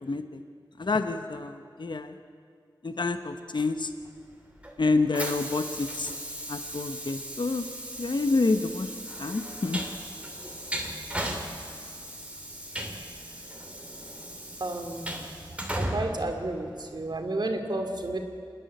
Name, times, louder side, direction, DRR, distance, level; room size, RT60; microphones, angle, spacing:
voice 1, 0.0-0.4 0.8-2.2 2.8-3.9 4.8-6.1 6.5-7.7 8.0-8.9 9.2-9.8, left 3 dB, 65° left, 8 dB, 1.0 m, -28 dB
Train, 4.0-17.2, right 1 dB, 15° right, 2.6 m, -37 dB
voice 2, 14.6-15.0 15.7-18.2, right 2 dB, 60° right, 4 dB, 2.4 m, -31 dB
28.0 x 10.5 x 9.6 m, 2.2 s
wide cardioid pair, 75°, 8 cm